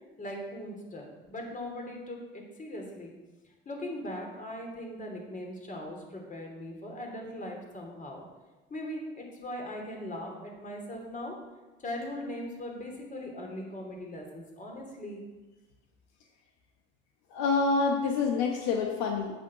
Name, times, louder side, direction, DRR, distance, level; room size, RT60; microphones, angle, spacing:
voice 1, 0.2-3.1 3.6-8.2 8.7-11.3 11.8-15.2, left 1 dB, 25° left, 0 dB, 3.1 m, -39 dB
voice 2, 17.3-19.4, left 4 dB, 75° left, 3 dB, 1.1 m, -27 dB
8.3 x 6.6 x 5.8 m, 1.2 s
supercardioid pair, 80°, 29 cm